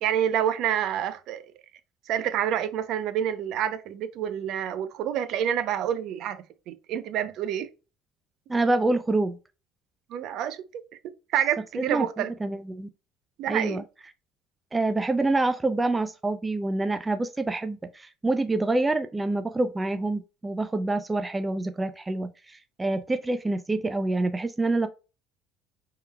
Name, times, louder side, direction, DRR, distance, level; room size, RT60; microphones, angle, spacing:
voice 1, 0.0-1.4 2.1-7.7 10.1-12.3 13.4-13.8, right 10 dB, 60° right, 0.6 m, -28 dB
voice 2, 8.5-9.4 11.8-12.9 13.5-13.8 14.7-24.9, right 2 dB, 15° right, 0.3 m, -26 dB
5.5 x 3.7 x 2.2 m
cardioid pair, 130°, 0 cm